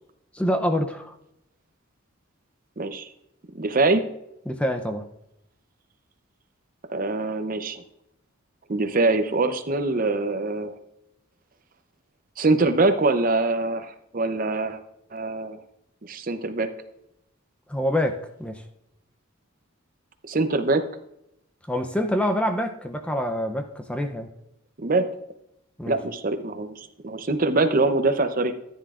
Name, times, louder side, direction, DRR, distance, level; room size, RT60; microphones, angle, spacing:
voice 1, 0.3-1.1 4.5-5.0 17.7-18.6 21.7-24.3 25.8-26.0, equal, 5° left, 6 dB, 0.5 m, -26 dB
voice 2, 2.8-3.1 3.5-4.0 6.9-7.8 8.7-10.7 12.4-14.8 15.1-15.6 16.0-16.7 20.3-20.8 24.8-25.0 25.9-28.5, right 3 dB, 40° right, 9 dB, 0.7 m, -23 dB
13.5 x 9.8 x 2.5 m, 0.82 s
head